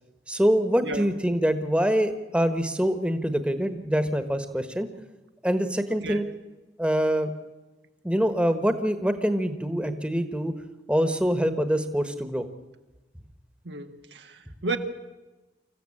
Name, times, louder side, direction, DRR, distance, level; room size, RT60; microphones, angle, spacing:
voice 1, 0.3-4.9 5.4-6.2 6.8-7.3 8.0-10.5 10.9-12.4, equal, 5° right, 1.3 m, -25 dB
voice 2, 5.9-6.2 13.6-14.8, right 2 dB, 85° right, 1.7 m, -33 dB
25.5 x 14.5 x 8.7 m
head